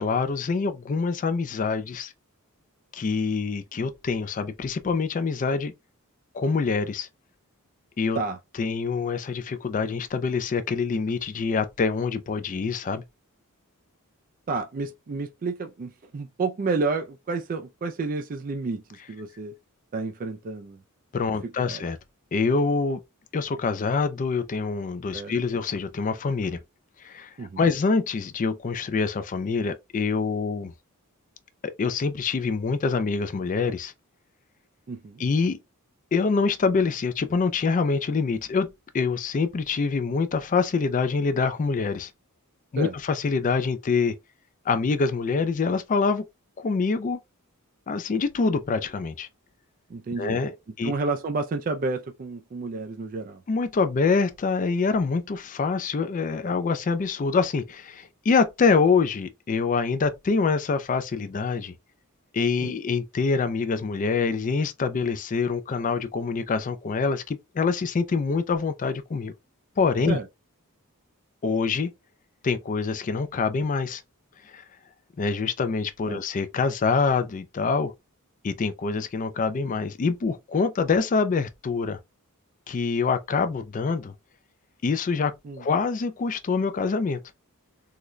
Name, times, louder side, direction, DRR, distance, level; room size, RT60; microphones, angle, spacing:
voice 1, 0.0-2.1 2.9-5.7 6.3-7.1 8.0-8.2 8.6-13.0 21.1-22.0 22.3-23.0 23.3-26.6 27.0-30.7 31.6-33.9 35.2-35.6 36.1-42.1 42.7-44.2 44.7-46.3 46.6-47.2 47.9-49.3 50.2-50.5 50.8-50.9 53.5-61.7 62.3-69.3 69.8-70.2 71.4-71.9 72.4-74.0 74.5-74.6 75.2-77.9 78.4-82.0 82.7-84.1 84.8-87.2, left 4 dB, 35° left, 0.4 m, -25 dB
voice 2, 14.5-18.8 19.1-19.5 19.9-20.8 21.4-21.8 25.1-25.3 27.4-27.6 34.9-35.2 42.8-42.9 49.9-50.4 50.8-53.4 62.6-62.7 70.1-70.3 76.1-76.2 85.4-85.6, right 3 dB, 40° right, 0.4 m, -30 dB
3.8 x 2.2 x 3.1 m
head